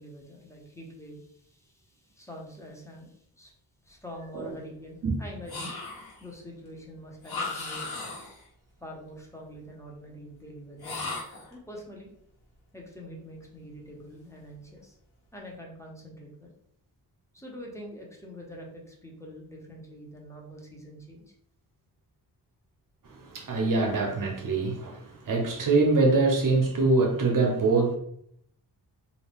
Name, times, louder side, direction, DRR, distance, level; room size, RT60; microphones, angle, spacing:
voice 1, 0.0-3.5 3.8-5.7 6.2-7.9 8.8-11.1 11.5-12.1 12.7-15.0 15.3-16.5 17.3-21.2, equal, 5° left, 0.7 m, -45 dB
sound 1, 5.5-6.3 7.2-8.5 10.8-11.5, left 3 dB, 65° left, 1.1 m, -36 dB
voice 2, 23.0-28.0, right 3 dB, 50° right, 0.8 m, -24 dB
2.5 x 2.2 x 3.5 m
cardioid pair, 90°, 41 cm